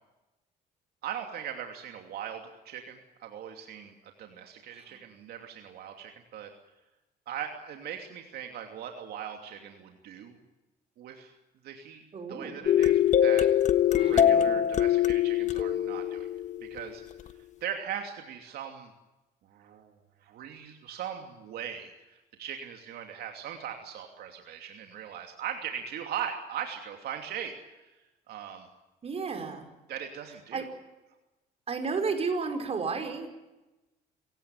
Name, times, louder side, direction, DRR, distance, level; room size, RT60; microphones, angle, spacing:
voice 1, 1.0-6.5 7.3-10.4 11.0-11.3 11.6-12.0 12.3-13.5 13.9-16.3 16.6-17.0 17.6-18.9 19.4-19.9 20.2-28.7 29.9-30.7, right 9 dB, 70° right, 4 dB, 2.8 m, -39 dB
voice 2, 12.1-12.7 14.0-14.6 29.0-29.7 30.5-30.6 31.7-33.3, right 4 dB, 35° right, 5 dB, 5.1 m, -33 dB
sound 1, 12.7-17.1, left 10 dB, 45° left, 1.4 m, -23 dB
27.5 x 17.0 x 9.3 m, 1.1 s
cardioid pair, 110°, 17 cm